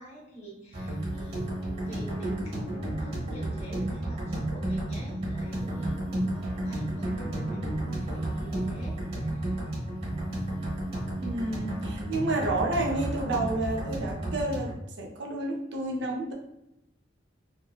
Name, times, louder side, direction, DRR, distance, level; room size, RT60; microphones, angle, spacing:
voice 1, 0.0-9.6 10.0-10.8, right 1 dB, 35° left, -3 dB, 0.8 m, -47 dB
sound 1, 0.7-14.7, right 1 dB, 35° right, 1.1 m, -32 dB
voice 2, 11.2-16.3, right 2 dB, 65° right, 0 dB, 0.6 m, -30 dB
2.8 x 2.5 x 2.3 m, 0.85 s
head